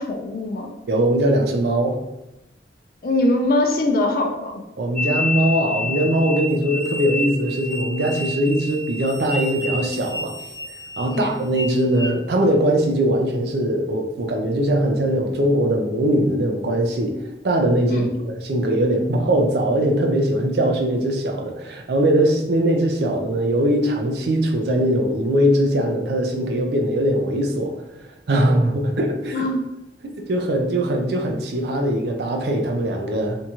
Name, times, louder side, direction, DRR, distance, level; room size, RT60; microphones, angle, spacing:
voice 1, 0.0-0.7 3.0-4.6 11.1-11.3 17.9-18.1 29.3-29.6, left 1 dB, 55° left, 3 dB, 0.4 m, -22 dB
voice 2, 0.9-2.0 4.8-10.4 11.0-17.2 17.4-29.5 30.1-33.4, right 1 dB, 65° right, 3 dB, 0.4 m, -21 dB
sound 1, 5.0-12.1, left 2 dB, 5° left, 0.7 m, -30 dB
2.7 x 2.3 x 2.8 m, 0.93 s
head